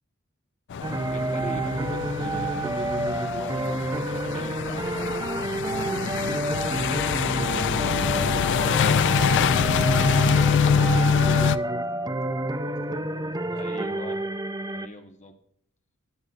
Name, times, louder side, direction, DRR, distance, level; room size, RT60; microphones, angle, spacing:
sound 1, 0.7-11.6, left 6 dB, 55° left, 0.4 m, -25 dB
sound 2, 0.8-14.9, right 2 dB, 15° right, 0.5 m, -29 dB
voice 1, 1.0-5.1 5.7-6.6 13.5-14.2 14.7-15.3, left 2 dB, 35° left, 4 dB, 1.3 m, -43 dB
voice 2, 7.4-8.0 10.3-13.7, right 1 dB, 70° right, -1 dB, 3.0 m, -45 dB
20.0 x 7.9 x 2.5 m, 0.69 s
head